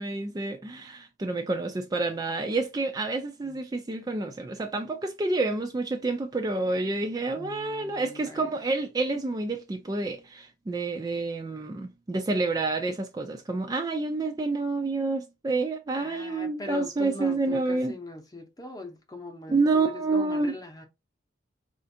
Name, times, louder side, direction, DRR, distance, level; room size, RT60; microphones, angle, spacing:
voice 1, 0.0-17.9 19.5-20.6, right 3 dB, 20° right, 0.3 m, -28 dB
voice 2, 7.3-8.6 15.9-20.8, left 2 dB, 20° left, 0.7 m, -41 dB
4.2 x 2.5 x 2.6 m
head